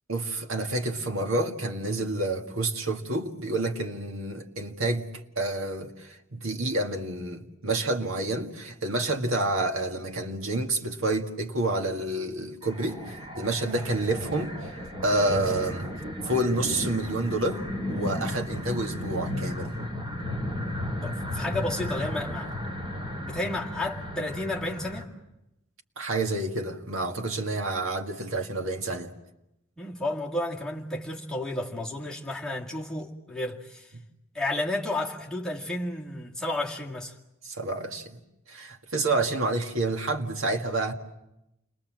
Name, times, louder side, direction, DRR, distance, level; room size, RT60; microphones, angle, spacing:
voice 1, 0.1-5.1 5.4-14.7 15.0-15.9 16.2-17.6 17.9-19.8 26.0-29.1 37.5-38.2 38.5-40.9, right 2 dB, 75° right, 1.9 m, -29 dB
sound 1, 12.6-25.0, left 1 dB, 20° right, 4.3 m, -34 dB
voice 2, 21.0-22.5 23.2-25.1 29.8-33.9 34.3-37.1, left 1 dB, 5° left, 2.1 m, -32 dB
29.5 x 22.0 x 7.6 m
head